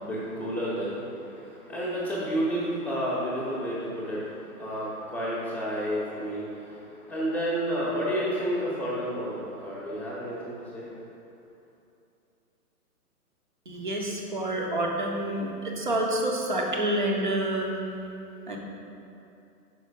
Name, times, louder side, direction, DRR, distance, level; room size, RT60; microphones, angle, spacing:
voice 1, 0.0-10.9, equal, 10° left, -12 dB, 0.6 m, -31 dB
voice 2, 13.7-17.7 18.5-18.6, right 1 dB, 35° right, 0 dB, 0.5 m, -28 dB
5.4 x 4.8 x 5.0 m, 2.7 s
hypercardioid pair, 160°, 47 cm